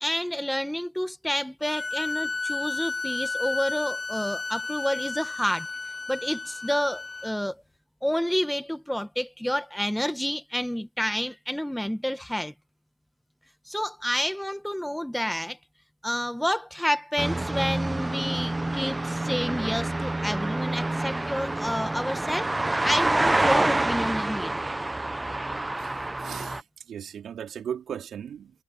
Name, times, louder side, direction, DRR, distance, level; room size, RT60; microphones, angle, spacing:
voice 1, 0.0-5.7 6.1-7.6 8.0-12.5 13.6-15.6 16.0-24.5, equal, 5° left, 1.4 m, -29 dB
sound 1, 1.6-7.3, left 3 dB, 25° left, 0.4 m, -32 dB
sound 2, 17.2-26.6, right 2 dB, 15° right, 0.6 m, -27 dB
voice 2, 25.8-26.6 26.9-28.5, right 8 dB, 65° right, 4.1 m, -37 dB
cardioid pair, 90°, 0 cm